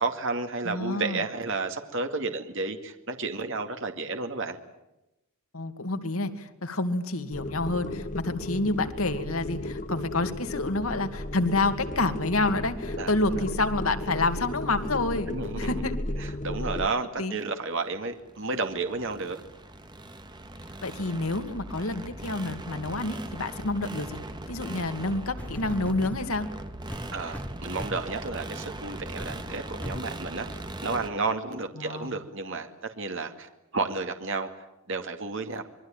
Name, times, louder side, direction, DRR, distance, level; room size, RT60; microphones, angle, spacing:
voice 1, 0.0-4.6 13.0-13.1 15.3-15.7 16.2-19.4 27.1-30.5 30.8-34.5 34.9-35.6, right 3 dB, 60° right, 6 dB, 2.4 m, -32 dB
voice 2, 0.6-1.2 5.5-16.0 17.2-17.3 20.8-24.2 24.5-26.5 31.8-32.2, left 2 dB, 80° left, 8 dB, 2.4 m, -28 dB
sound 1, 7.3-16.9, left 1 dB, 35° left, 1.6 m, -34 dB
sound 2, 17.8-31.1, right 1 dB, 20° right, 2.1 m, -40 dB
sound 3, 25.4-26.3 26.9-28.2 28.7-28.8 29.2-29.4 29.8-30.1 30.8-30.9, equal, 5° left, 1.2 m, -39 dB
26.5 x 22.0 x 9.0 m, 0.93 s
head